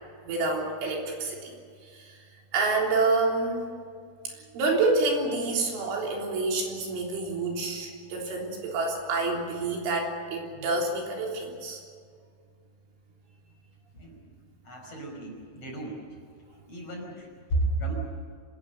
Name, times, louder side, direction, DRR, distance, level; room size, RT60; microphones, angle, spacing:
voice 1, 0.2-1.6 1.9-2.2 2.5-3.6 4.3-11.8, right 3 dB, 70° right, 0 dB, 6.0 m, -28 dB
voice 2, 14.6-16.0 16.7-17.9, right 2 dB, 30° left, 0 dB, 5.8 m, -32 dB
26.0 x 20.0 x 6.8 m, 2.2 s
omnidirectional pair, 5.8 m